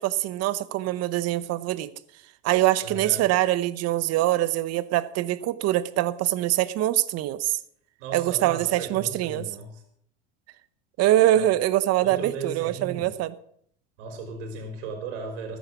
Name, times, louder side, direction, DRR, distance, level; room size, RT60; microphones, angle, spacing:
voice 1, 0.0-1.9 2.4-7.6 8.1-9.4 11.0-13.3, right 14 dB, 45° right, 16 dB, 1.0 m, -24 dB
voice 2, 2.8-3.3 8.0-9.8 11.3-11.5 12.0-13.2 14.0-15.6, right 5 dB, 75° right, 4 dB, 4.4 m, -36 dB
14.0 x 10.5 x 6.2 m, 0.68 s
supercardioid pair, 130°, 36 cm